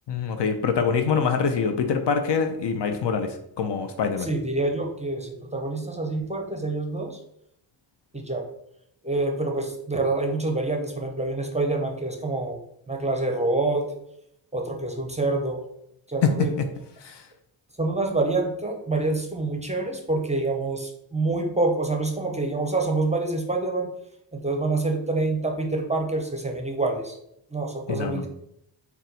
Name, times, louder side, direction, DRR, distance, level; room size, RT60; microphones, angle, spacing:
voice 1, 0.1-4.3 16.2-16.3 17.0-17.2 27.9-28.2, left 6 dB, 65° left, 6 dB, 0.5 m, -24 dB
voice 2, 4.2-7.2 8.1-8.4 9.0-12.6 12.9-13.8 14.5-15.6 16.1-16.5 17.8-23.9 24.3-27.2 27.5-28.3, right 2 dB, 15° right, 2 dB, 0.6 m, -26 dB
4.0 x 2.3 x 4.0 m, 0.76 s
cardioid pair, 65°, 45 cm